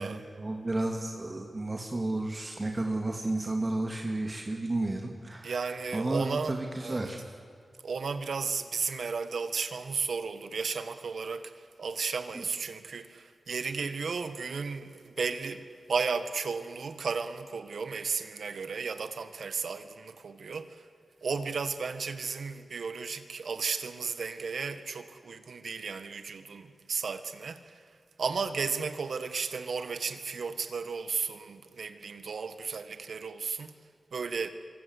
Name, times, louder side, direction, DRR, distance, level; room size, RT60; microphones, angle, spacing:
voice 1, 0.0-7.2 12.3-12.4, right 2 dB, 35° right, 2.5 m, -32 dB
voice 2, 5.4-7.1 7.8-20.8 21.2-27.8 28.2-33.7 34.1-34.5, right 5 dB, 80° right, 1.7 m, -34 dB
25.0 x 24.5 x 8.1 m
wide cardioid pair, 75°, 0 cm